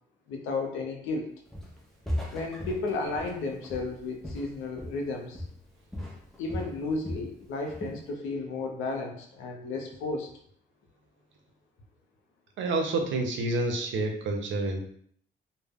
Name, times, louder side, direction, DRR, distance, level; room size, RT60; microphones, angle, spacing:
voice 1, 0.3-1.3 2.3-5.4 6.4-10.3, left 3 dB, 90° left, 3 dB, 0.6 m, -33 dB
Walk footsteps, 1.5-5.1 5.3-5.7 5.9-7.3 7.7-8.0, left 1 dB, ahead, 0.7 m, -37 dB
voice 2, 12.6-14.8, right 2 dB, 70° right, 3 dB, 0.6 m, -28 dB
2.2 x 2.1 x 3.4 m, 0.62 s
cardioid pair, 90°, 20 cm